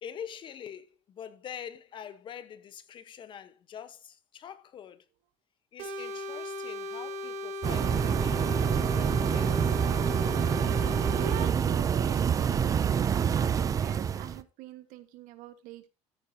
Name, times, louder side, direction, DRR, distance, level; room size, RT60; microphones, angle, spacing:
voice 1, 0.0-5.0 5.7-9.8, left 8 dB, 40° left, 1.1 m, -45 dB
sound 1, 5.8-11.5, left 1 dB, 65° right, 2.0 m, -37 dB
sound 2, 7.6-14.4, right 7 dB, 25° right, 0.5 m, -27 dB
voice 2, 10.7-15.9, right 12 dB, 85° right, 1.6 m, -44 dB
13.5 x 9.5 x 2.8 m
cardioid pair, 165°, 13 cm